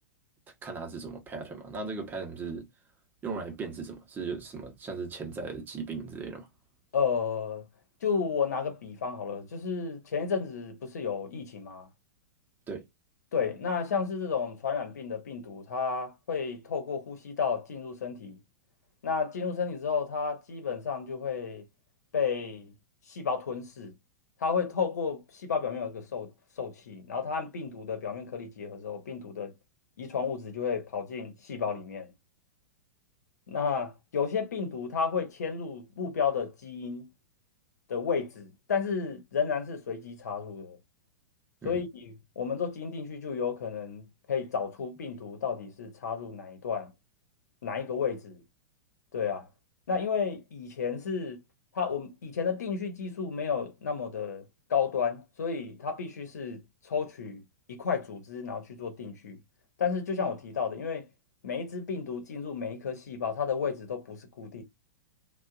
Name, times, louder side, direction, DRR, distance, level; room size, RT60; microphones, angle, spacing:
voice 1, 0.6-2.7 3.2-6.5 12.7-12.9 41.6-41.8, right 4 dB, 20° right, 0.9 m, -37 dB
voice 2, 6.9-7.7 8.0-11.9 13.3-18.4 19.0-21.6 22.1-22.7 23.1-23.9 24.4-26.3 26.6-29.5 30.0-32.1 33.5-37.1 37.9-40.8 41.6-46.9 47.6-48.4 49.1-49.5 49.9-51.4 51.7-57.4 57.7-59.4 59.8-61.1 61.4-64.6, left 6 dB, 70° left, 1.0 m, -32 dB
2.6 x 2.3 x 2.4 m
figure-of-eight pair, 100°, 9 cm